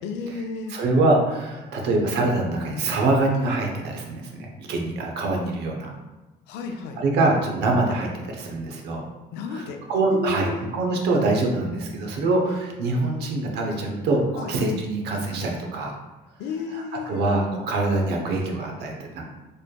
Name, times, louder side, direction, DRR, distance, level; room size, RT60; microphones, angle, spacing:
voice 1, 0.0-0.8 6.5-7.0 9.3-9.8 10.1-10.6 14.4-14.5 16.4-17.3, left 4 dB, 90° left, 5 dB, 0.5 m, -32 dB
voice 2, 0.7-5.9 7.0-9.0 9.5-15.9 16.7-19.2, right 2 dB, 80° right, 1 dB, 0.8 m, -24 dB
4.2 x 3.3 x 2.2 m, 1.1 s
cardioid pair, 110°, 17 cm